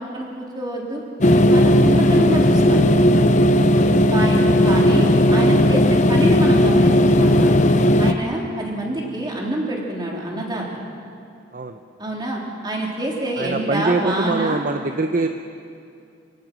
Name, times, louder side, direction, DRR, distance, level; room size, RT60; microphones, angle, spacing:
voice 1, 0.0-2.8 4.1-7.6 8.0-10.7 12.0-14.6, right 1 dB, 20° right, -2 dB, 3.7 m, -26 dB
sound 1, 1.2-8.1, left 1 dB, 40° left, 0.8 m, -15 dB
voice 2, 3.7-4.0 11.5-11.8 13.4-15.3, right 3 dB, 45° right, 6 dB, 0.7 m, -23 dB
28.0 x 18.5 x 6.2 m, 2.4 s
head